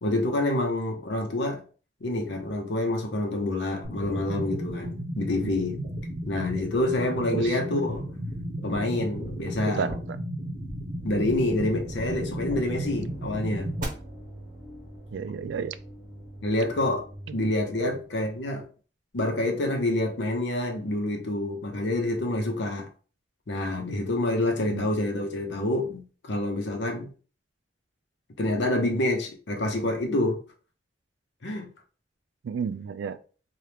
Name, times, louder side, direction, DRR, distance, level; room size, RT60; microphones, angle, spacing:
voice 1, 0.0-1.6 2.0-5.8 6.3-8.0 8.6-9.9 11.0-13.7 16.4-17.0 17.3-18.6 19.1-22.9 23.5-27.1 28.4-30.4 31.4-31.7, left 1 dB, 80° left, 0.8 m, -27 dB
sound 1, 3.8-13.8, equal, 50° right, 1.0 m, -34 dB
voice 2, 9.6-10.0 15.1-15.8 17.4-17.5 17.8-18.0 24.7-24.9 32.4-33.2, right 6 dB, 85° right, 0.3 m, -31 dB
sound 2, 10.7-18.6, equal, 25° right, 1.0 m, -43 dB
2.8 x 2.4 x 3.3 m
head